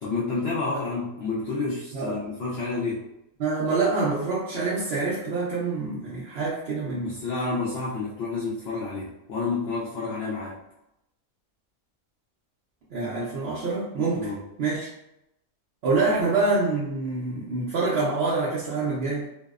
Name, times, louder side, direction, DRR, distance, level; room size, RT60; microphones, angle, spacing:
voice 1, 0.0-3.1 7.0-10.6 14.1-14.4, left 3 dB, 70° left, -6 dB, 0.6 m, -29 dB
voice 2, 3.4-7.2 12.9-14.3 14.6-14.9 15.8-19.3, right 3 dB, 65° right, -7 dB, 0.6 m, -26 dB
2.6 x 2.0 x 2.3 m, 0.86 s
omnidirectional pair, 1.5 m